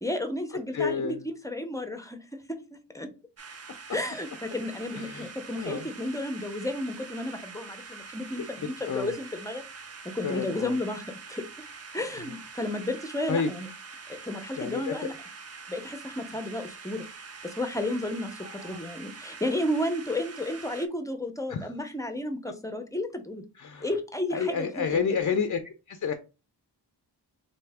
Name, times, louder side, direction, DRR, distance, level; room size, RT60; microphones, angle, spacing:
voice 1, 0.0-3.1 3.9-9.6 10.0-11.4 11.9-13.7 14.1-15.1 15.7-17.0 17.4-23.4 23.8-24.9, left 1 dB, 10° left, 0.7 m, -32 dB
voice 2, 0.7-1.2 4.9-5.3 5.6-5.9 8.4-8.5 8.8-9.1 10.2-10.8 13.3-13.5 14.6-15.1 18.4-18.8 21.5-21.7 23.6-23.9 24.3-26.1, left 6 dB, 45° left, 0.5 m, -30 dB
sound 1, 3.4-20.9, right 5 dB, 35° right, 0.6 m, -45 dB
3.3 x 2.8 x 3.4 m
wide cardioid pair, 55°, 42 cm